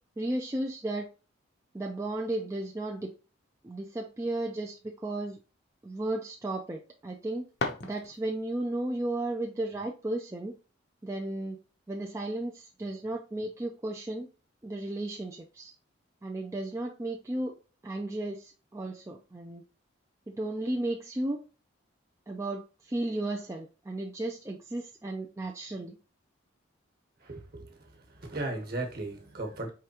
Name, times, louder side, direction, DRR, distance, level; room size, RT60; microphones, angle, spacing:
voice 1, 0.2-1.1 1.7-3.1 3.6-5.4 5.8-7.5 7.8-10.5 11.0-11.6 11.9-14.3 14.6-15.7 16.2-17.5 17.8-19.6 20.3-21.4 22.3-26.0, right 1 dB, 15° right, 0.3 m, -34 dB
sound 1, 7.1-8.6, left 3 dB, 55° left, 0.7 m, -37 dB
voice 2, 27.2-29.7, right 2 dB, 50° right, 1.2 m, -37 dB
4.8 x 3.3 x 2.8 m
head